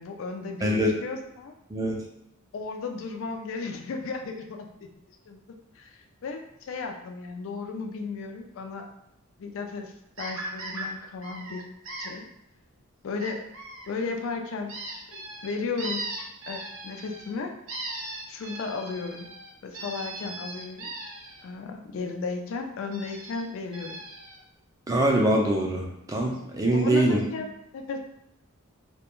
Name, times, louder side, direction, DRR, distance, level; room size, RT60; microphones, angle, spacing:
voice 1, 0.0-1.5 2.5-4.9 5.3-5.4 5.8-8.9 9.4-11.6 12.0-12.2 13.0-13.4 13.9-14.8 15.1-16.1 16.5-17.6 18.3-19.3 19.6-20.9 21.4-24.0 26.7-28.0, left 4 dB, 60° left, 4 dB, 0.3 m, -35 dB
voice 2, 0.6-0.9 1.7-2.1 24.9-27.2, right 1 dB, 15° right, -1 dB, 0.4 m, -23 dB
sound 1, 10.2-10.9 11.2-12.1 13.2-13.9 14.7-17.3 17.7-21.4 22.9-23.4 23.7-24.4 26.4-26.5 26.8-26.9 27.2-27.3, right 2 dB, 65° right, 0.6 m, -38 dB
2.3 x 2.2 x 3.0 m, 0.82 s
head